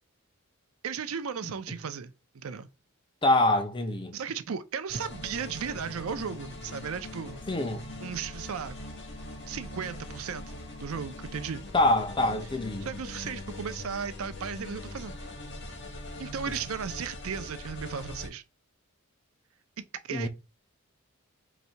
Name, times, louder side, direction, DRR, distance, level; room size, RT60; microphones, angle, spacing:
voice 1, 0.8-2.7 4.1-7.4 8.0-8.8 9.5-11.6 12.8-15.2 16.2-18.4 20.0-20.3, right 6 dB, 70° right, 0.5 m, -35 dB
voice 2, 3.2-4.1 7.5-7.9 11.7-12.9 20.1-20.3, left 1 dB, 20° left, 0.5 m, -25 dB
sound 1, 4.9-18.3, left 1 dB, 50° left, 1.3 m, -42 dB
4.0 x 2.7 x 4.4 m
head